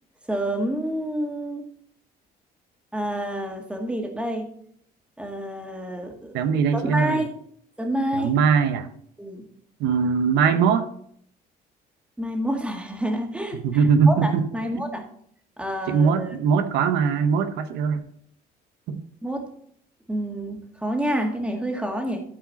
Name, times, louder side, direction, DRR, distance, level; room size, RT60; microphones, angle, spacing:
voice 1, 0.3-1.6 2.9-4.5 5.2-7.3 7.8-8.3 9.2-9.5 12.2-13.6 14.1-15.1 15.6-16.3 19.2-19.5 20.1-22.2, right 1 dB, 5° right, 3 dB, 1.8 m, -28 dB
voice 2, 6.3-7.2 8.1-8.9 9.8-10.9 13.6-14.5 15.9-18.0 18.9-19.0, right 6 dB, 90° right, 9 dB, 0.8 m, -21 dB
13.0 x 4.8 x 4.1 m, 0.65 s
cardioid pair, 110°, 17 cm